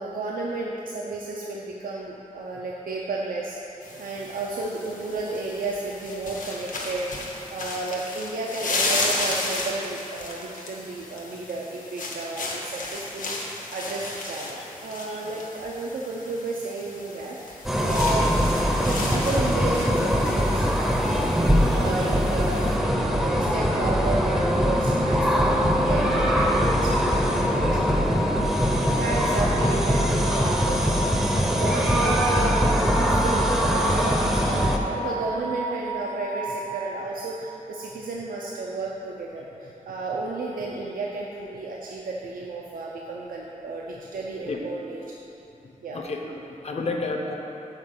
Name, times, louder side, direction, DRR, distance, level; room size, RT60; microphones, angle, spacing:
voice 1, 0.0-18.3 18.8-45.0 45.8-46.0, right 3 dB, 85° right, -3 dB, 0.6 m, -32 dB
sound 1, 3.8-22.8, left 2 dB, 65° left, 1.0 m, -34 dB
sound 2, 17.7-34.8, equal, ahead, 0.6 m, -22 dB
sound 3, 25.7-37.3, right 1 dB, 85° left, 1.4 m, -34 dB
voice 2, 45.6-47.3, left 3 dB, 50° left, 2 dB, 0.7 m, -32 dB
5.9 x 4.7 x 6.6 m, 2.9 s
wide cardioid pair, 150°, 14 cm